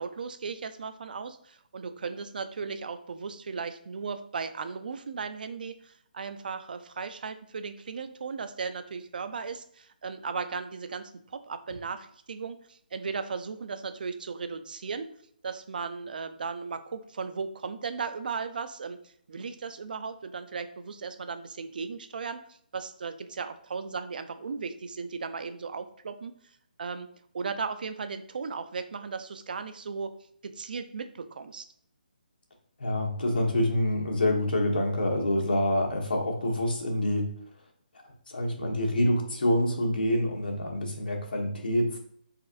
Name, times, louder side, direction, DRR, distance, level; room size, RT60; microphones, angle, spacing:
voice 1, 0.0-15.1 15.4-26.3 26.8-27.1 27.3-30.1 30.4-31.7, right 5 dB, 60° right, 10 dB, 0.5 m, -36 dB
voice 2, 32.8-37.3 38.3-42.0, left 1 dB, 75° left, 0 dB, 1.3 m, -26 dB
4.1 x 3.7 x 2.5 m, 0.67 s
hypercardioid pair, 155°, 5 cm